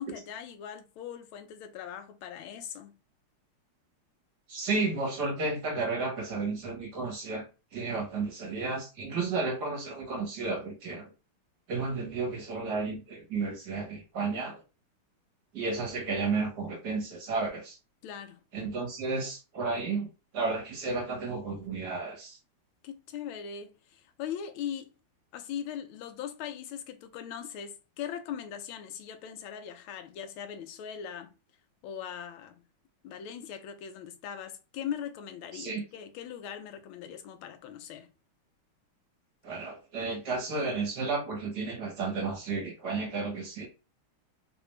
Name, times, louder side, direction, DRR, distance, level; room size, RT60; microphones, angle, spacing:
voice 1, 0.0-2.9 18.0-18.4 22.8-24.9 25.3-31.3 31.8-32.6 33.0-38.1, left 8 dB, 80° left, 1.4 m, -40 dB
voice 2, 4.5-7.5 7.7-11.1 11.7-14.6 15.5-17.8 18.5-20.1 20.3-22.4 35.5-35.8 39.4-43.7, right 3 dB, 55° right, 1.7 m, -32 dB
3.9 x 2.6 x 3.1 m
omnidirectional pair, 2.3 m